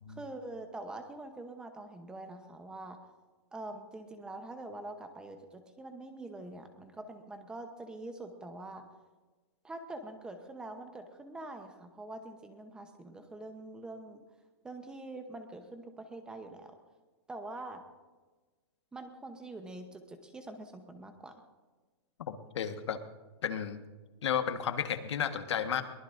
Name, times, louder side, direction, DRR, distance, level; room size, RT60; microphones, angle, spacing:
voice 1, 0.1-3.0 3.5-8.8 9.6-14.2 14.6-16.8 17.3-17.8 18.9-21.3, right 2 dB, 5° right, 6 dB, 0.8 m, -45 dB
voice 2, 22.3-23.0 23.4-23.8 24.2-25.8, left 8 dB, 85° left, 8 dB, 1.4 m, -33 dB
22.5 x 18.5 x 2.6 m, 1.3 s
supercardioid pair, 175°, 14 cm